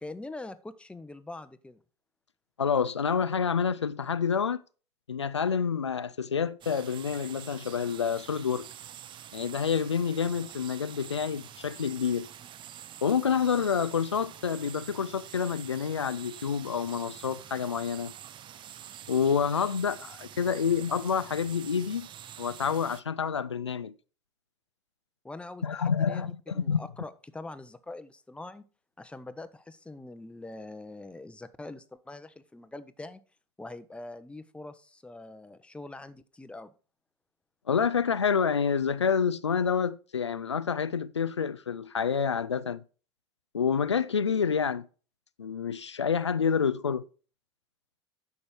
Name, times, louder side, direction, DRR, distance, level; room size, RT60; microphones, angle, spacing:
voice 1, 0.0-1.8 25.2-28.6 29.0-33.2 33.6-36.7, left 2 dB, 10° left, 0.9 m, -43 dB
voice 2, 2.6-4.6 5.1-8.7 9.3-12.3 13.0-18.1 19.1-22.1 22.4-23.9 25.6-26.8 37.7-42.8 43.5-44.9 45.4-47.0, left 6 dB, 90° left, 0.4 m, -28 dB
sound 1, 6.6-23.0, right 10 dB, 35° right, 0.6 m, -46 dB
9.7 x 6.5 x 4.6 m
figure-of-eight pair, 75°, 14 cm